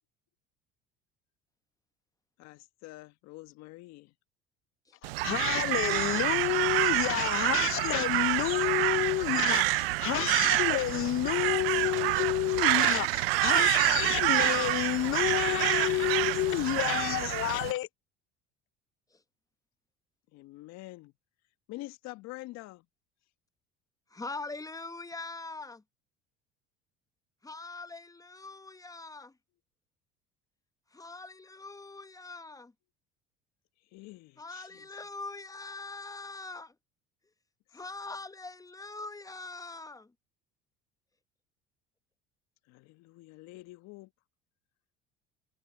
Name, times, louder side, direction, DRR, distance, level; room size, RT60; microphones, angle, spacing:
voice 1, 2.4-4.1 20.3-21.1 21.7-22.8 33.9-34.9 42.7-44.1, left 19 dB, 65° left, 1.6 m, -46 dB
Crow, 5.0-17.7, right 21 dB, 85° right, 0.5 m, -28 dB
voice 2, 5.2-17.9, left 14 dB, 45° left, 0.7 m, -29 dB
voice 3, 24.1-25.8 27.4-29.3 30.9-32.7 34.4-36.7 37.7-40.1, left 3 dB, 10° left, 0.9 m, -42 dB
hypercardioid pair, 70°, 29 cm